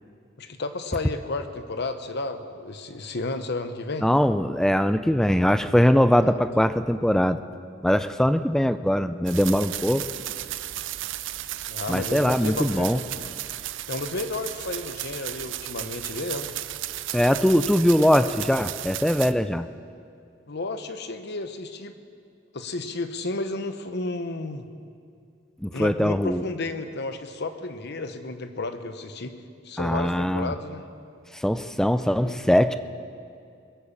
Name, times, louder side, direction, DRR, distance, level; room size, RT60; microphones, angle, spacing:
voice 1, 0.4-4.1 6.2-6.4 11.7-13.0 13.9-16.5 20.5-21.9 22.5-24.7 25.7-29.3 29.6-30.8 32.2-32.4, left 2 dB, 60° left, 9 dB, 0.9 m, -32 dB
voice 2, 4.0-7.4 7.8-10.0 11.9-13.0 17.1-19.7 25.6-26.4 29.8-30.5 31.3-32.8, equal, 5° left, 12 dB, 0.3 m, -21 dB
sound 1, 9.3-19.3, right 13 dB, 70° right, 0.5 m, -34 dB
22.0 x 8.4 x 7.2 m, 2.4 s
head